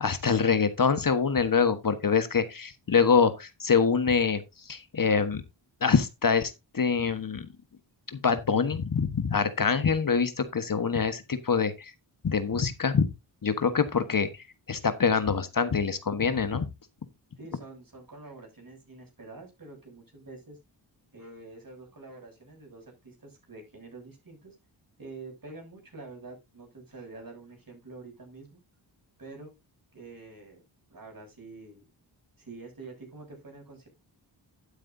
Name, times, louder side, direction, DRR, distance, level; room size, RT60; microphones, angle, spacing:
voice 1, 0.0-5.4 5.8-7.5 8.1-11.9 12.2-13.1 13.4-14.3 14.7-16.7, left 6 dB, 45° left, 1.4 m, -25 dB
voice 2, 17.4-20.6 21.1-24.5 25.0-28.6 29.2-29.5 29.9-30.6 30.9-31.8 32.4-33.9, right 3 dB, 45° right, 7.4 m, -46 dB
11.5 x 9.0 x 2.7 m
cardioid pair, 50°, 45 cm